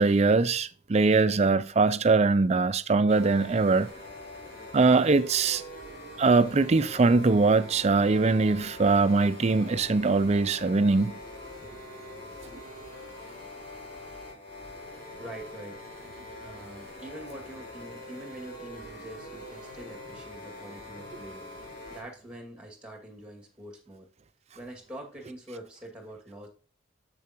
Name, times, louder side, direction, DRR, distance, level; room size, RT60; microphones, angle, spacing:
voice 1, 0.0-3.9 4.7-5.6 6.2-11.1, right 3 dB, 35° right, 0.4 m, -22 dB
sound 1, 3.1-22.0, left 1 dB, 50° left, 3.7 m, -44 dB
voice 2, 15.2-15.8 16.4-21.4 21.9-24.1 24.6-26.5, right 1 dB, 5° right, 2.2 m, -44 dB
7.7 x 6.9 x 2.9 m
head